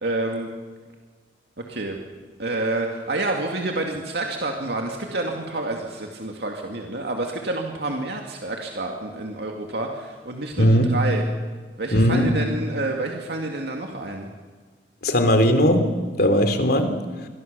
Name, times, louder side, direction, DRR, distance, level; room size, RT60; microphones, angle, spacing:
voice 1, 0.0-0.5 1.6-2.0 2.4-11.2 11.8-14.3, right 2 dB, 70° right, 1 dB, 2.4 m, -28 dB
voice 2, 10.6-10.9 11.9-12.3 15.0-15.9 16.2-16.9, equal, 60° left, 7 dB, 3.0 m, -18 dB
27.0 x 22.5 x 6.9 m, 1.4 s
head